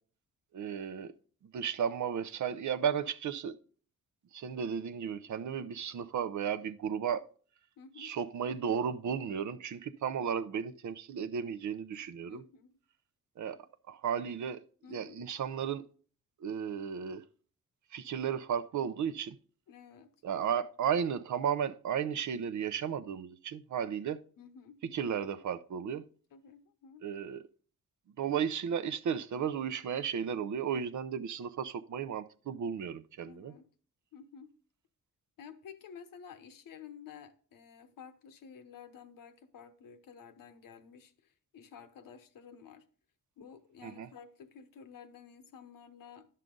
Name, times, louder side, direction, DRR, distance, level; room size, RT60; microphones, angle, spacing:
voice 1, 0.5-1.1 1.5-3.6 4.3-7.2 8.0-12.4 13.4-13.6 13.9-14.6 14.9-15.9 16.4-17.2 17.9-19.4 20.2-24.2 24.9-26.0 27.0-27.4 28.2-33.5 43.8-44.1, right 7 dB, 60° right, 0.7 m, -34 dB
voice 2, 7.8-8.2 12.3-12.8 14.8-15.3 19.7-20.1 24.4-24.8 26.3-27.1 33.2-33.7 34.1-34.5 35.4-42.9 43.4-46.3, left 7 dB, 85° left, 1.0 m, -52 dB
11.0 x 6.6 x 3.8 m
wide cardioid pair, 125°, 33 cm